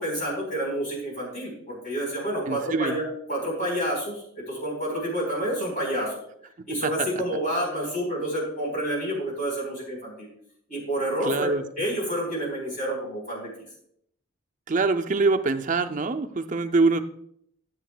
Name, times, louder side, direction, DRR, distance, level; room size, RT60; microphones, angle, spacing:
voice 1, 0.0-3.0 3.3-6.1 6.7-10.3 10.7-13.5, right 1 dB, 40° left, -4 dB, 4.0 m, -29 dB
voice 2, 2.5-3.0 6.6-7.1 11.2-11.6 14.7-17.0, right 3 dB, 35° right, 7 dB, 0.5 m, -24 dB
15.0 x 8.0 x 2.3 m, 0.71 s
head